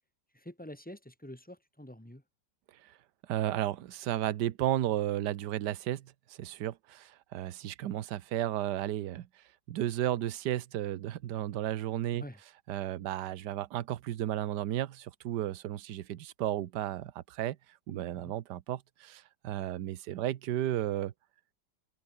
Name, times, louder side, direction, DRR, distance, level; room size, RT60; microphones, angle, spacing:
voice 1, 0.3-2.2 12.1-12.4 18.1-18.3, left 1 dB, 5° left, 3.5 m, -47 dB
voice 2, 3.3-12.2 12.7-17.6 17.9-21.1, right 12 dB, 65° right, 1.4 m, -33 dB
open air
omnidirectional pair, 2.0 m